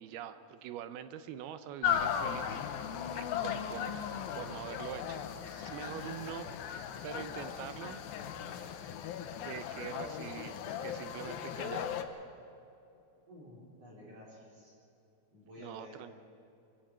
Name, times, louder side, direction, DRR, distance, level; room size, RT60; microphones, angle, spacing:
voice 1, 0.0-2.6 3.1-4.1 4.4-6.5 7.0-8.0 9.4-12.0 15.6-16.2, right 10 dB, 75° right, 11 dB, 2.5 m, -44 dB
sound 1, 1.8-12.0, left 8 dB, 70° left, 2.4 m, -37 dB
voice 2, 13.3-14.7 15.3-16.0, left 1 dB, 35° right, -4 dB, 5.2 m, -52 dB
24.0 x 16.5 x 7.5 m, 2.7 s
omnidirectional pair, 4.9 m